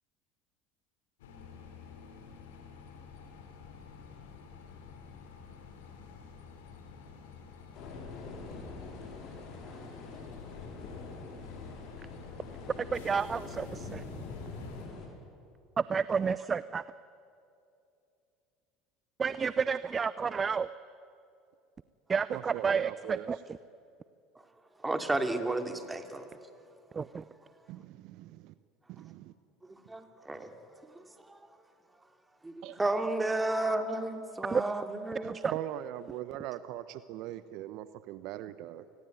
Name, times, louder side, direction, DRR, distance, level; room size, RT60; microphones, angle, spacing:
sound 1, 1.2-14.9, left 6 dB, 75° left, 3.4 m, -49 dB
sound 2, 7.7-15.1, left 3 dB, 55° left, 5.9 m, -45 dB
voice 1, 12.9-14.0 15.8-16.8 19.2-20.7 22.1-23.4 26.9-27.2 34.5-34.6 35.3-35.5, right 6 dB, 30° right, 16 dB, 0.6 m, -30 dB
voice 2, 22.3-23.3 27.7-28.5 28.9-29.3 32.6-32.8 35.5-38.8, right 13 dB, 60° right, 14 dB, 0.9 m, -40 dB
voice 3, 24.8-26.3 29.7-30.5 30.9-31.5 32.4-35.4, right 2 dB, 15° right, 7 dB, 2.8 m, -32 dB
28.5 x 20.0 x 9.3 m, 2.6 s
hypercardioid pair, 70°, 0 cm